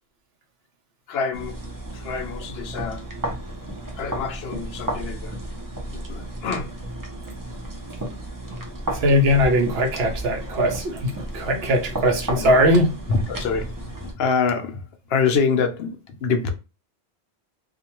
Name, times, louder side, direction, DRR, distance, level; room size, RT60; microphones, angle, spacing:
voice 1, 1.1-1.6 1.9-3.1 4.0-5.4 5.9-6.7 11.6-11.7 12.4-12.5 13.1-16.5, left 5 dB, 70° left, 0.8 m, -26 dB
sound 1, 1.3-14.1, right 1 dB, 30° right, 0.4 m, -33 dB
voice 2, 8.9-12.9, equal, 70° right, 0.9 m, -20 dB
2.4 x 2.2 x 2.9 m
omnidirectional pair, 1.1 m